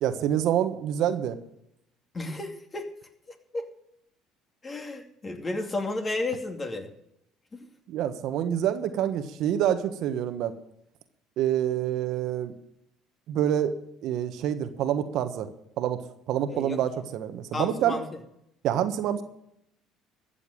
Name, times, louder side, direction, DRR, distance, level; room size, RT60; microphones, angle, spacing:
voice 1, 0.0-1.4 7.9-10.5 11.4-12.5 13.3-13.7 14.0-15.5 15.8-18.0 18.6-19.2, right 10 dB, 65° right, 9 dB, 1.3 m, -27 dB
voice 2, 2.1-2.9 3.5-3.7 4.6-6.9 7.5-7.7 16.5-16.8 17.5-18.0, left 2 dB, 30° left, 4 dB, 2.7 m, -32 dB
14.0 x 7.1 x 8.8 m, 0.77 s
supercardioid pair, 75°, 0 cm